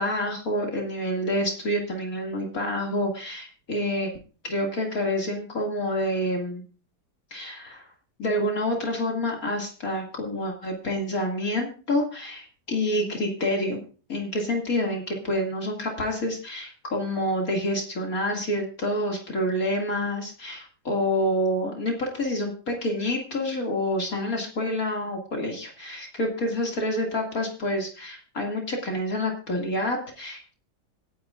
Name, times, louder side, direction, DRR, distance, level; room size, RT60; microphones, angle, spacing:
voice 1, 0.0-4.1 4.4-6.6 7.3-7.9 8.2-13.8 14.1-30.6, left 1 dB, 55° left, 0 dB, 2.7 m, -28 dB
26.0 x 9.6 x 2.5 m, 0.38 s
omnidirectional pair, 1.8 m